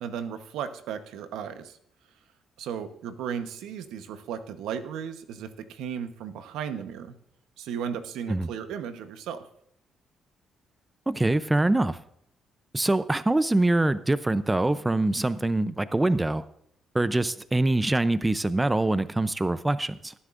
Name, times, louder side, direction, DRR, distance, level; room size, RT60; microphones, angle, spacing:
voice 1, 0.0-1.8 2.6-7.1 7.6-9.5, right 8 dB, 90° right, 9 dB, 1.0 m, -35 dB
voice 2, 11.1-12.0 12.7-16.4 16.9-20.1, right 2 dB, 15° right, 14 dB, 0.5 m, -24 dB
19.0 x 9.8 x 2.5 m, 0.71 s
cardioid pair, 90°, 0 cm